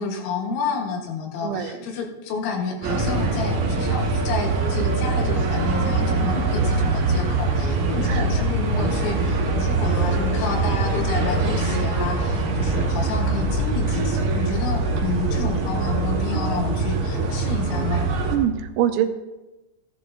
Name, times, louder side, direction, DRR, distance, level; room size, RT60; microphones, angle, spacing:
voice 1, 0.0-18.1, left 5 dB, 80° left, 1 dB, 3.8 m, -30 dB
voice 2, 1.4-1.8 8.1-8.4 18.3-19.1, right 11 dB, 85° right, 8 dB, 2.9 m, -24 dB
sound 1, 2.8-18.4, right 3 dB, 65° right, 2.8 m, -23 dB
15.5 x 11.0 x 2.7 m, 1.1 s
omnidirectional pair, 5.5 m